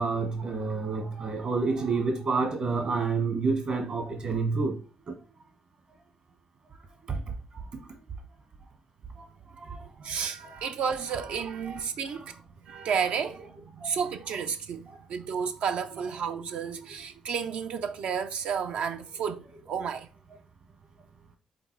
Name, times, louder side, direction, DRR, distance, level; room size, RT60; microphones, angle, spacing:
voice 1, 0.0-4.7 5.1-5.2 7.1-7.2 9.6-9.8 10.4-10.7 11.6-11.8 13.8-13.9, right 4 dB, 55° right, 1.2 m, -29 dB
voice 2, 10.0-12.3 12.7-20.1, right 7 dB, 80° right, 0.5 m, -32 dB
5.1 x 4.0 x 4.5 m
cardioid pair, 120°, 2 cm